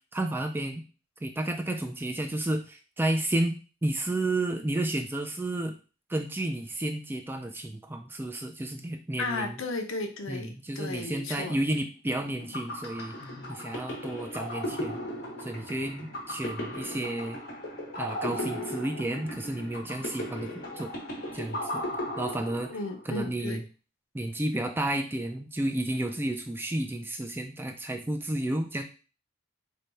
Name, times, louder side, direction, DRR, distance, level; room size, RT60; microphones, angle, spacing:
voice 1, 0.1-0.8 1.2-5.8 6.1-9.6 10.3-13.2 13.5-15.0 15.4-17.4 17.9-20.9 21.3-21.8 22.2-22.7 23.1-23.6 24.1-28.8, right 1 dB, 10° right, 5 dB, 0.3 m, -31 dB
voice 2, 9.2-11.6 22.7-23.6, left 3 dB, 80° left, 6 dB, 0.6 m, -34 dB
sound 1, 12.2-23.1, left 1 dB, 50° left, 1.2 m, -36 dB
3.3 x 2.3 x 4.0 m, 0.34 s
head